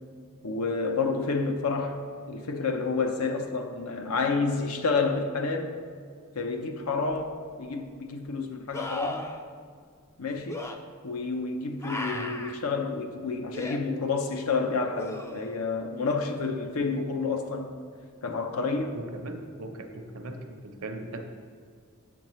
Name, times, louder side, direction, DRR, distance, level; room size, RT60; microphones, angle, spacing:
voice 1, 0.4-2.0 2.3-5.8 6.4-9.3 10.2-10.7 11.0-17.7 18.2-19.0, left 4 dB, 80° left, 0.7 m, -29 dB
sound 1, 7.1-7.2 8.7-9.4 10.5-10.8 11.8-12.6 13.5-13.8 15.0-15.6 18.8-18.9, left 1 dB, 10° left, 0.3 m, -36 dB
voice 2, 18.9-21.3, right 1 dB, 70° right, 0.7 m, -39 dB
8.5 x 6.9 x 3.0 m
head